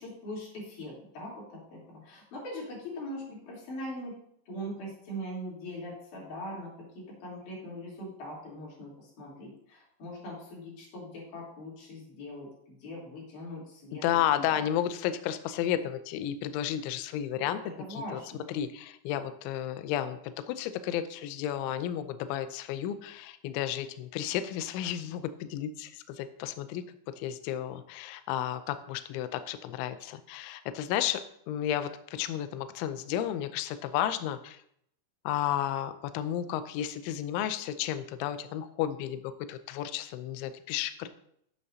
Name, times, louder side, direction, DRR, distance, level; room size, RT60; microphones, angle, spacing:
voice 1, 0.0-4.2 4.5-14.0 14.5-14.6 17.4-18.5, equal, 40° left, -5 dB, 4.4 m, -41 dB
voice 2, 14.0-17.6 17.9-18.2 18.5-31.2 31.5-34.6 35.3-41.1, left 11 dB, 85° left, 10 dB, 2.7 m, -32 dB
12.0 x 8.7 x 2.8 m, 0.70 s
omnidirectional pair, 5.8 m